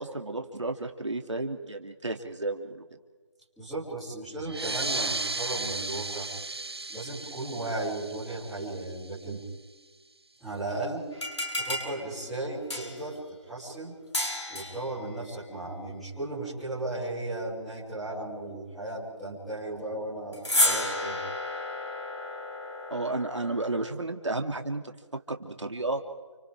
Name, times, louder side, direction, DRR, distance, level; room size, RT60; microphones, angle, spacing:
voice 1, 0.0-2.8 22.9-26.0, right 2 dB, 75° right, 4 dB, 2.8 m, -32 dB
voice 2, 3.6-6.3 6.9-9.4 10.4-11.0 11.5-13.2 13.5-13.9 14.5-21.2, right 2 dB, ahead, -14 dB, 3.3 m, -35 dB
sound 1, 4.4-9.6, right 3 dB, 55° right, 0.8 m, -35 dB
sound 2, 11.1-13.1 14.1-14.9 20.3-23.9, left 1 dB, 65° left, 7.4 m, -31 dB
30.0 x 29.5 x 3.7 m, 1.3 s
figure-of-eight pair, 175°, 16 cm